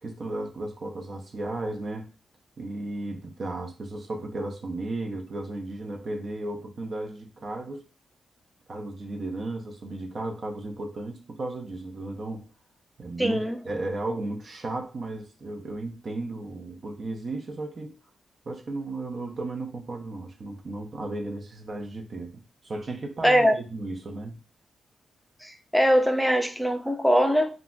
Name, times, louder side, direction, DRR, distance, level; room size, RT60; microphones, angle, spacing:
voice 1, 0.0-2.1 2.6-7.9 8.7-12.5 13.0-18.0 18.5-24.4, right 2 dB, 55° right, 0.6 m, -34 dB
voice 2, 13.2-13.6 23.2-23.5 25.4-27.5, equal, ahead, 0.5 m, -22 dB
2.4 x 2.0 x 3.7 m
supercardioid pair, 50°, 0 cm